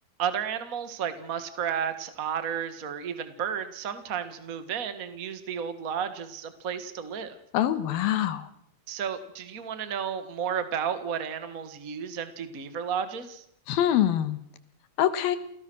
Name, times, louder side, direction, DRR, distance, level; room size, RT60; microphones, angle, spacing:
voice 1, 0.2-7.4 8.9-13.4, right 8 dB, 60° right, 10 dB, 0.8 m, -32 dB
voice 2, 7.5-8.5 13.7-14.4 15.0-15.4, left 11 dB, 75° left, 12 dB, 3.0 m, -24 dB
29.0 x 18.0 x 6.2 m, 0.74 s
omnidirectional pair, 4.4 m